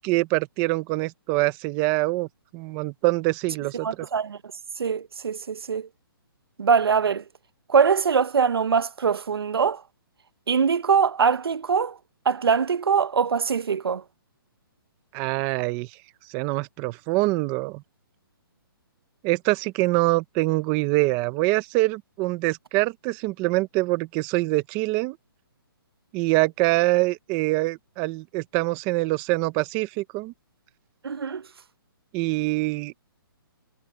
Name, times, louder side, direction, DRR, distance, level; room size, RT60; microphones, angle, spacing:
voice 1, 0.0-2.3 2.5-4.1 15.1-15.9 16.3-17.8 19.2-25.2 26.1-30.3 32.1-32.9, right 21 dB, 15° right, 0.7 m, -24 dB
voice 2, 3.8-4.4 4.8-5.9 6.6-7.2 7.7-9.8 10.5-12.0 12.2-14.0 31.0-31.4, right 6 dB, 85° right, 1.1 m, -22 dB
hypercardioid pair, 170°, 12 cm